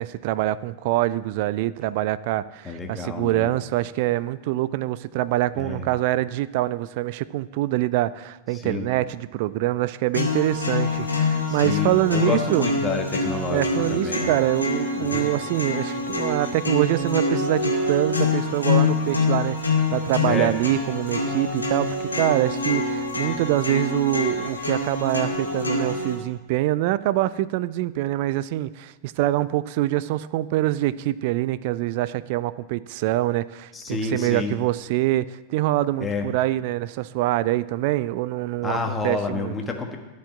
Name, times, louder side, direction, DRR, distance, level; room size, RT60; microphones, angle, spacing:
voice 1, 0.0-12.7 13.5-39.6, right 15 dB, 50° right, 18 dB, 0.4 m, -25 dB
voice 2, 2.6-3.5 5.5-5.9 8.5-8.9 11.5-14.3 15.0-15.3 20.2-20.5 33.7-34.5 36.0-36.3 38.6-40.0, left 4 dB, 15° left, 3 dB, 1.5 m, -29 dB
sound 1, 10.1-26.1, left 3 dB, 80° left, 2.0 m, -25 dB
13.5 x 5.4 x 7.2 m, 1.1 s
figure-of-eight pair, 90°, 0 cm